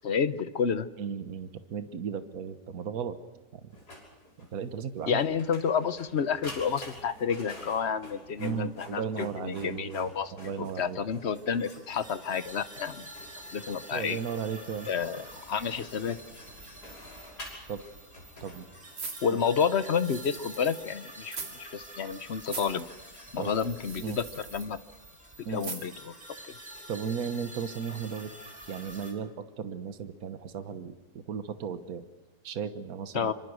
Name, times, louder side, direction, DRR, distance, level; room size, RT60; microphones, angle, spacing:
voice 1, 0.0-0.9 5.1-10.3 10.8-13.0 13.5-14.2 14.9-16.2 19.2-22.9 23.3-24.2 24.5-24.8 25.5-26.1 33.1-33.3, left 6 dB, 45° left, 12 dB, 1.0 m, -30 dB
voice 2, 1.0-3.2 3.5-3.7 4.4-5.2 8.4-11.0 13.9-14.9 17.7-17.8 18.4-18.7 19.3-19.4 23.4-23.6 24.0-24.2 25.5-25.7 26.9-28.3 28.7-32.0 32.4-33.3, right 7 dB, 60° right, 9 dB, 1.6 m, -35 dB
Printer, 3.7-19.1, left 1 dB, 70° left, 6.6 m, -49 dB
sound 1, 11.3-29.1, right 1 dB, 25° right, 4.6 m, -48 dB
sound 2, 18.9-20.9 21.2-21.6 21.8-21.9 22.4-22.8 23.6-24.7 25.6-26.1 26.5-26.6, right 4 dB, 75° right, 3.1 m, -41 dB
25.5 x 25.0 x 6.3 m, 1.1 s
omnidirectional pair, 1.8 m